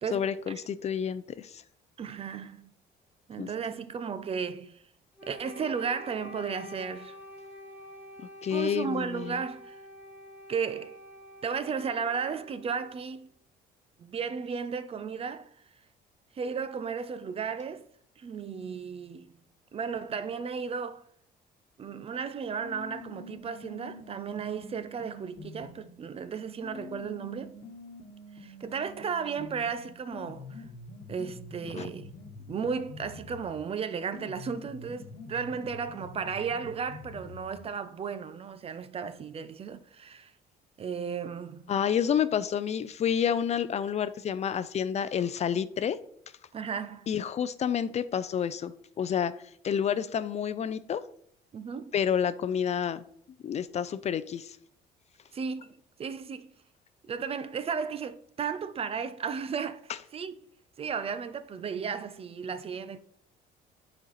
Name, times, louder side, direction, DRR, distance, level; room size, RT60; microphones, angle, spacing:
voice 1, 0.1-1.6 3.4-3.5 8.4-9.4 31.8-31.9 41.7-46.0 47.1-49.3 49.6-51.0 51.9-53.0 53.4-54.6, left 8 dB, 40° left, 0.5 m, -29 dB
voice 2, 2.0-2.7 3.3-4.8 5.3-7.2 8.5-9.8 10.5-11.0 11.4-13.3 14.0-15.5 16.4-17.8 18.2-19.3 19.7-21.0 21.8-27.6 28.4-30.6 31.1-32.1 32.5-40.3 40.8-41.6 46.5-47.1 51.5-51.9 55.3-56.5 57.1-59.8 60.1-60.4 60.8-63.0, right 6 dB, 35° right, 0.6 m, -34 dB
Wind instrument woodwind instrument, 5.2-13.2, left 1 dB, 10° right, 2.0 m, -48 dB
sound 1, 22.6-25.9 26.6-33.6 34.1-37.6, left 3 dB, 85° left, 1.2 m, -46 dB
8.9 x 4.4 x 4.1 m
cardioid pair, 110°, 17 cm